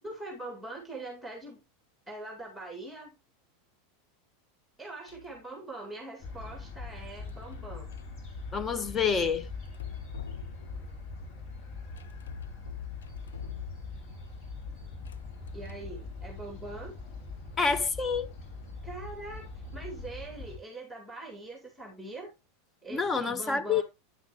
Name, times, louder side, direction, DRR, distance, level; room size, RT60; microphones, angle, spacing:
voice 1, 0.0-1.6 2.1-3.1 4.8-7.9 15.5-16.9 18.8-22.3 22.8-23.8, right 2 dB, ahead, 2.9 m, -42 dB
sound 1, 5.1-5.4 7.3-8.2 9.7-11.0 12.0-14.2 14.9-16.0, left 12 dB, 80° left, 0.6 m, -44 dB
sound 2, 6.2-20.6, left 3 dB, 45° left, 2.9 m, -42 dB
voice 2, 8.5-9.5 17.6-18.3 22.9-23.8, left 5 dB, 25° left, 0.9 m, -28 dB
10.0 x 6.4 x 3.3 m
hypercardioid pair, 90°, 0 cm